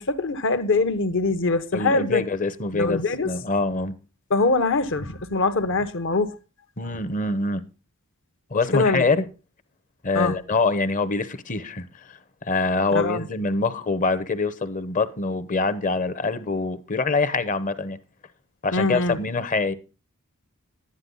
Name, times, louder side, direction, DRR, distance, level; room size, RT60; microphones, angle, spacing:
voice 1, 0.0-2.2 2.7-3.3 4.3-6.4 8.7-9.0 10.1-10.3 12.9-13.3 18.7-19.2, left 3 dB, 60° left, 1.0 m, -23 dB
voice 2, 1.7-3.9 6.8-7.6 8.5-9.2 10.0-18.0 18.6-19.7, left 3 dB, 35° left, 0.8 m, -25 dB
11.5 x 9.7 x 3.9 m
head